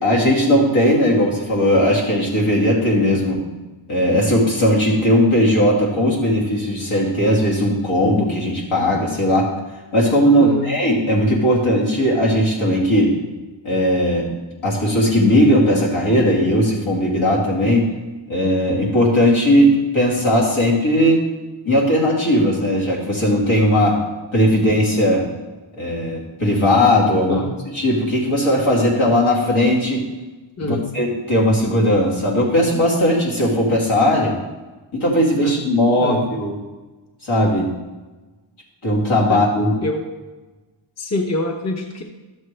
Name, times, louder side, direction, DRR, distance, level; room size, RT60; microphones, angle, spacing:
voice 1, 0.0-3.4 3.9-9.5 9.9-13.1 13.6-14.3 14.6-17.9 18.3-21.2 21.6-24.0 24.3-25.3 25.8-27.4 27.7-30.0 30.6-34.3 34.9-36.5 37.2-37.7 38.8-39.8, equal, 80° left, -4 dB, 2.6 m, -17 dB
voice 2, 10.4-10.7 27.3-27.5 30.6-30.9 35.4-35.6 36.0-36.2 39.3-39.4 39.8-40.1 41.0-42.0, left 1 dB, 35° left, 2 dB, 0.8 m, -25 dB
12.5 x 7.2 x 3.2 m, 1.2 s
wide cardioid pair, 150°, 48 cm